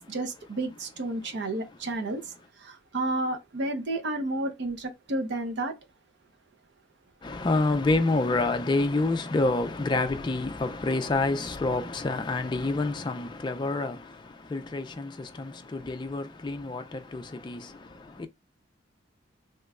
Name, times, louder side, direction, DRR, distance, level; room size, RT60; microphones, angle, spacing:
voice 1, 0.1-2.2 2.6-5.7, right 2 dB, 60° right, 0.6 m, -31 dB
voice 2, 7.2-18.3, left 2 dB, 25° left, 0.3 m, -28 dB
2.9 x 2.2 x 3.5 m
head